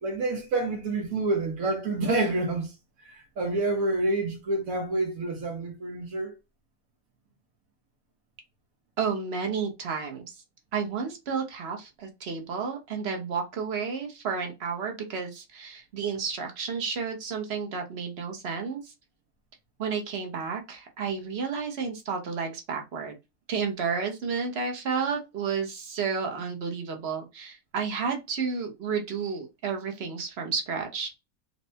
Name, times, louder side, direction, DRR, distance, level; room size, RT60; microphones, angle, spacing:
voice 1, 0.0-2.7 3.0-6.4, right 2 dB, 75° right, 1.3 m, -28 dB
voice 2, 9.0-10.4 10.7-18.9 19.8-23.1 23.5-31.1, right 5 dB, 55° right, 1.0 m, -31 dB
4.2 x 2.2 x 2.7 m
omnidirectional pair, 1.5 m